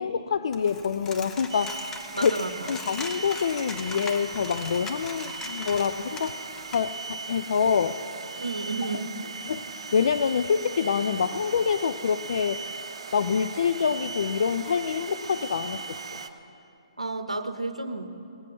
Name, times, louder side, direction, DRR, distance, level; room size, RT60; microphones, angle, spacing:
voice 1, 0.0-1.7 2.1-2.3 2.7-6.4 6.7-8.0 9.5-12.6 13.1-16.0, left 6 dB, 55° left, 11 dB, 0.4 m, -26 dB
Coin (dropping), 0.5-6.8, left 4 dB, 10° left, 0.8 m, -40 dB
sound 1, 1.5-16.3, right 4 dB, 50° right, 0.8 m, -38 dB
voice 2, 2.1-2.7 8.4-9.1 17.0-18.1, right 3 dB, 85° right, 8 dB, 0.8 m, -32 dB
18.5 x 8.2 x 6.2 m, 2.7 s
figure-of-eight pair, 130°, 3 cm